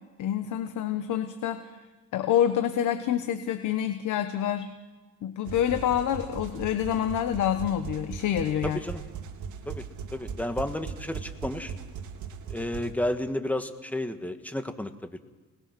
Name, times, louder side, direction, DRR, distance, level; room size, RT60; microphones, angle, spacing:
voice 1, 0.2-1.7 2.1-4.7 5.2-8.8, left 10 dB, 80° left, 9 dB, 1.2 m, -27 dB
sound 1, 5.5-12.9, right 7 dB, 75° right, 2.2 m, -39 dB
voice 2, 8.6-9.0 9.6-9.8 10.1-11.7 12.5-15.2, left 1 dB, 5° left, 8 dB, 1.8 m, -32 dB
26.5 x 20.0 x 6.1 m, 1.3 s
cardioid pair, 90°, 30 cm